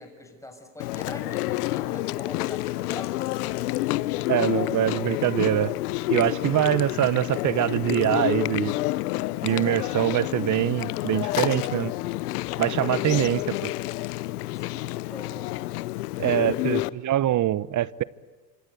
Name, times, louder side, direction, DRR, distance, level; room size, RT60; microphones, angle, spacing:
voice 1, 0.0-4.0 9.4-9.7 14.5-15.4, left 1 dB, 5° left, 6.6 m, -43 dB
Chewing mastication, 0.8-16.9, left 18 dB, 90° left, 0.8 m, -29 dB
voice 2, 4.3-5.7 6.1-8.7 9.4-11.9 12.6-13.7 16.2-18.0, right 13 dB, 40° right, 0.9 m, -24 dB
27.0 x 26.0 x 8.4 m
supercardioid pair, 90°, 45 cm